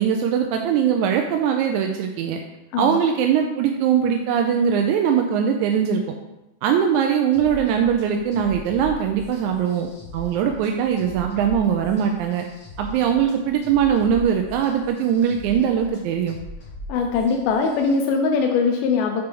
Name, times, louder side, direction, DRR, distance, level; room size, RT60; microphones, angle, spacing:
voice 1, 0.0-2.4 2.8-6.0 6.6-9.9 10.1-12.4 12.8-16.4, right 8 dB, 80° right, 3 dB, 1.8 m, -21 dB
sound 1, 7.3-17.9, equal, 25° left, 2.9 m, -40 dB
voice 2, 16.9-19.3, left 5 dB, 85° left, 3 dB, 2.2 m, -21 dB
6.7 x 4.4 x 5.2 m, 0.96 s
omnidirectional pair, 3.7 m